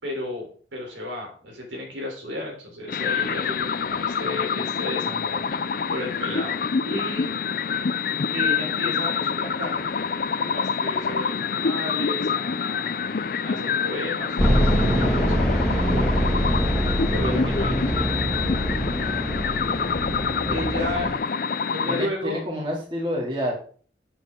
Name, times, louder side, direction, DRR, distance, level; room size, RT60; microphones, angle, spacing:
voice 1, 0.0-6.6 6.8-7.3 8.3-9.9 10.4-13.1 13.4-15.6 15.9-16.3 17.1-18.0 20.5-21.1 21.7-22.4, left 1 dB, 90° right, 0 dB, 3.6 m, -33 dB
sound 1, 2.9-22.1, left 6 dB, 50° left, 0.5 m, -27 dB
sound 2, 14.4-21.2, equal, 5° left, 2.0 m, -24 dB
voice 2, 20.4-20.9 21.9-23.5, equal, 25° right, -3 dB, 2.8 m, -29 dB
9.1 x 7.2 x 3.7 m, 0.44 s
head